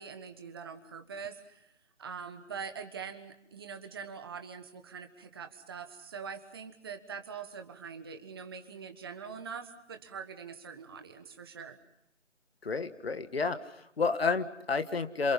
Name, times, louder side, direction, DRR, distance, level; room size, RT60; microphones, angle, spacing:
voice 1, 0.0-1.7 2.0-11.8, right 6 dB, 20° right, 8 dB, 1.4 m, -43 dB
voice 2, 12.6-15.3, left 4 dB, 55° left, 10 dB, 1.9 m, -30 dB
29.5 x 27.5 x 5.7 m, 0.79 s
figure-of-eight pair, 160°, 37 cm